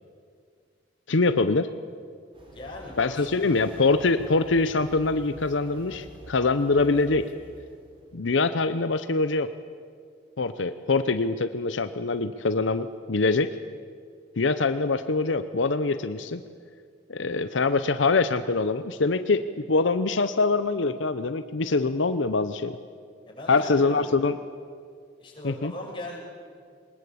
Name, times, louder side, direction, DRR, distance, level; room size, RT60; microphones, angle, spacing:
voice 1, 1.1-1.7 3.0-7.3 8.1-9.5 10.4-13.5 14.4-16.4 17.1-22.8 23.5-24.3 25.4-25.7, left 3 dB, 85° left, 11 dB, 0.8 m, -24 dB
sound 1, 2.3-8.4, equal, 30° right, 4.2 m, -48 dB
voice 2, 2.5-3.4 23.3-24.2 25.2-26.2, left 1 dB, 25° left, -2 dB, 5.9 m, -39 dB
22.0 x 20.0 x 8.5 m, 2.1 s
head